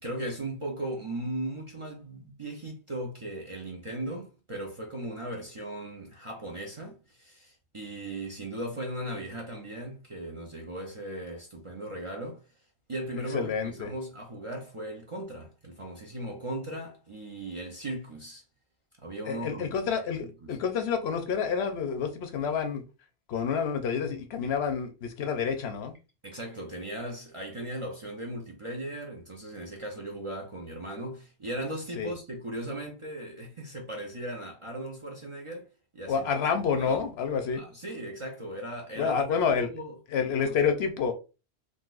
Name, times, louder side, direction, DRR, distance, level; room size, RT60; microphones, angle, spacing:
voice 1, 0.0-12.5 12.9-18.4 19.0-19.7 20.2-20.6 26.2-35.7 35.9-36.3 36.8-37.0 37.6-39.4 39.7-40.5, right 1 dB, 35° right, 0.5 m, -37 dB
voice 2, 13.3-13.9 19.3-22.8 23.3-25.9 32.0-32.1 36.1-37.6 39.0-39.7 40.1-41.1, left 6 dB, 70° left, 0.8 m, -28 dB
3.8 x 2.5 x 2.4 m
omnidirectional pair, 1.2 m